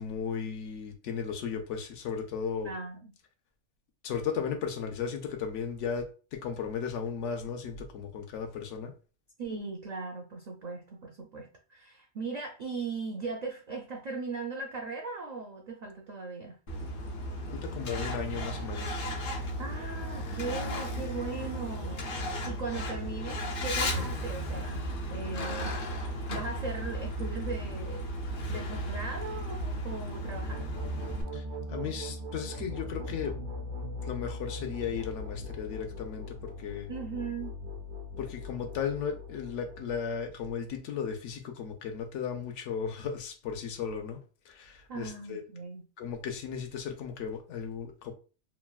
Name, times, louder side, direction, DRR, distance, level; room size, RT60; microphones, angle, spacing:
voice 1, 0.0-2.7 4.0-8.9 17.5-19.1 31.3-33.4 34.0-36.9 38.2-44.2 44.5-45.4 46.0-48.1, left 6 dB, 90° left, 5 dB, 0.9 m, -35 dB
voice 2, 2.6-3.1 9.4-16.6 19.6-24.8 25.1-25.8 26.3-28.1 28.5-30.7 36.9-37.5 44.9-45.9, right 4 dB, 65° right, 1 dB, 0.4 m, -38 dB
Truck, 16.7-31.2, equal, 55° left, 0.7 m, -35 dB
sound 1, 30.0-40.7, left 1 dB, 85° right, 1.2 m, -40 dB
3.2 x 2.2 x 2.3 m, 0.35 s
omnidirectional pair, 1.2 m